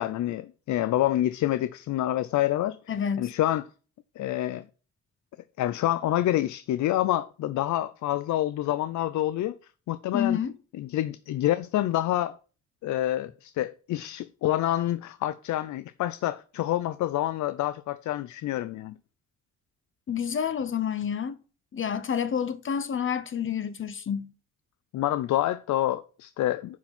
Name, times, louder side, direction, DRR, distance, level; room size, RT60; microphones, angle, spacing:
voice 1, 0.0-2.8 3.2-3.6 4.2-4.7 5.6-9.5 9.9-10.4 10.8-12.4 12.8-18.9 24.9-26.8, left 13 dB, 70° left, 0.6 m, -27 dB
voice 2, 2.9-3.3 10.1-10.5 20.1-21.4 21.7-24.3, left 8 dB, 40° left, 0.8 m, -29 dB
10.0 x 4.5 x 6.0 m
cardioid pair, 90°, 30 cm